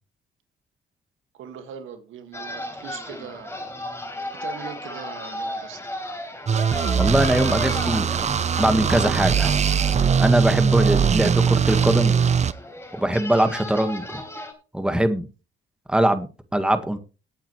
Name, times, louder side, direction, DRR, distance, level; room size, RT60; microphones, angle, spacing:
voice 1, 1.3-3.5 4.4-6.1, right 7 dB, 85° right, 2.0 m, -41 dB
sound 1, 2.3-14.5, left 1 dB, 10° left, 4.0 m, -35 dB
sound 2, 6.5-12.5, right 6 dB, 35° right, 0.6 m, -21 dB
voice 2, 7.0-8.2 8.6-9.5 10.2-12.1 12.9-14.2 14.7-15.3 15.9-17.0, right 1 dB, 5° right, 1.6 m, -22 dB
18.5 x 8.3 x 3.2 m
cardioid pair, 90°, 20 cm